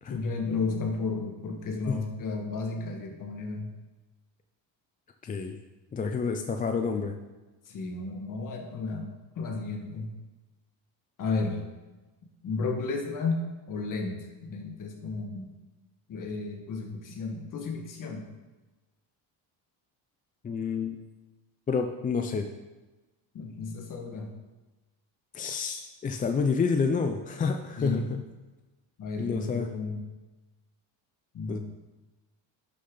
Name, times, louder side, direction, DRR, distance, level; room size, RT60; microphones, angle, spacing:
voice 1, 0.1-3.7 7.7-9.1 9.4-10.1 11.2-11.6 12.4-15.5 16.1-18.3 23.3-24.3 27.8-28.1 29.0-30.0 31.3-31.6, left 3 dB, 45° left, 2 dB, 1.7 m, -33 dB
voice 2, 5.2-5.6 5.9-7.1 20.4-21.0 21.7-22.5 25.3-28.2 29.2-29.7 31.5-31.6, left 5 dB, 20° left, 5 dB, 0.4 m, -29 dB
11.0 x 6.8 x 3.9 m, 1.2 s
cardioid pair, 130°, 44 cm